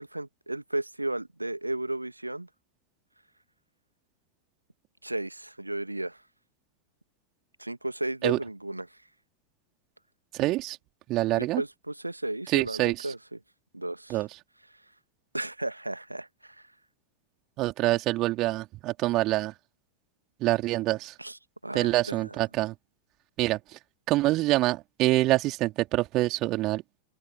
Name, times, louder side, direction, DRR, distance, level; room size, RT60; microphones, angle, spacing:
voice 1, 0.0-2.5 5.0-6.2 7.6-8.9 11.3-13.4 13.7-14.2 15.3-16.6 21.2-22.4, right 1 dB, 85° right, 1.8 m, -34 dB
voice 2, 10.4-10.8 11.1-11.6 12.5-13.1 14.1-14.3 17.6-19.5 20.4-21.1 21.7-22.7 23.4-23.6 24.1-26.8, right 18 dB, 40° right, 3.4 m, -25 dB
figure-of-eight pair, 90°, 0 cm